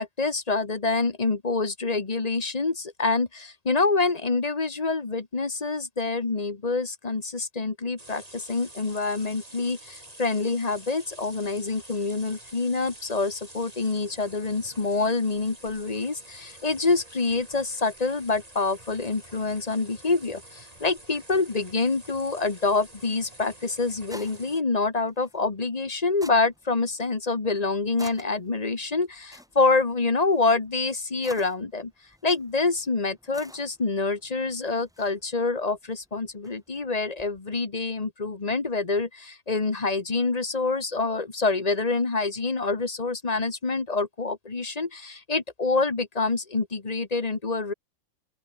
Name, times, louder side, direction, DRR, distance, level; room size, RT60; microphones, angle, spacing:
voice 1, 0.0-31.9 32.2-47.7, left 3 dB, 30° left, 1.5 m, -26 dB
sound 1, 8.0-24.6, right 1 dB, 30° right, 5.0 m, -48 dB
sound 2, 23.2-37.4, equal, 5° right, 7.5 m, -52 dB
open air
omnidirectional pair, 1.3 m